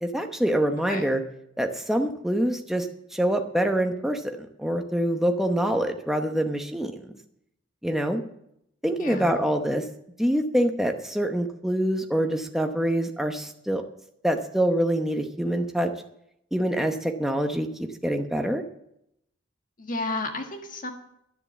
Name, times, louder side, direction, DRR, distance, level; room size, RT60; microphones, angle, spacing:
voice 1, 0.0-1.2 1.6-7.1 7.8-8.2 8.8-9.8 10.2-13.8 14.2-15.9 16.5-18.6, right 1 dB, ahead, 4 dB, 0.8 m, -25 dB
voice 2, 9.0-9.3 19.8-20.9, left 2 dB, 40° left, 4 dB, 1.6 m, -32 dB
11.0 x 10.5 x 7.2 m, 0.78 s
head